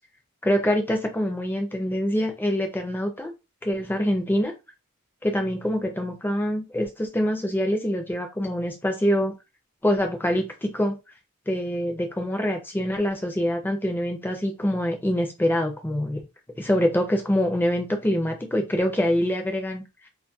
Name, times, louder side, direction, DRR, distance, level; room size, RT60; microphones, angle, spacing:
voice 1, 0.4-3.3 3.6-4.5 5.2-9.4 9.8-10.9 11.5-16.2 16.6-20.1, equal, 10° left, 0.4 m, -25 dB
2.3 x 2.1 x 2.6 m
head